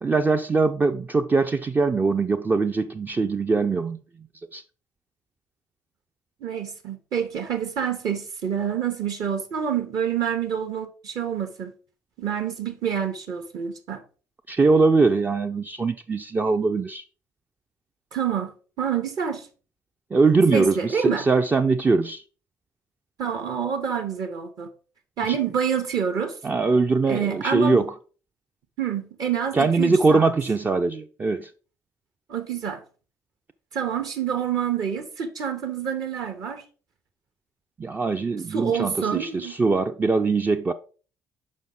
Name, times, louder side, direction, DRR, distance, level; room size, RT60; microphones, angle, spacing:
voice 1, 0.0-4.0 4.5-4.6 14.5-17.0 20.1-22.2 25.2-25.4 26.4-27.9 29.5-31.5 37.8-40.7, right 4 dB, 20° right, 0.4 m, -22 dB
voice 2, 6.4-11.7 12.2-14.0 18.1-19.5 20.5-21.3 23.2-24.7 25.2-26.4 27.0-27.9 28.8-30.3 32.3-32.8 33.7-36.6 38.5-39.5, right 8 dB, 50° right, 0.8 m, -27 dB
6.3 x 5.2 x 3.7 m
figure-of-eight pair, 50°, 8 cm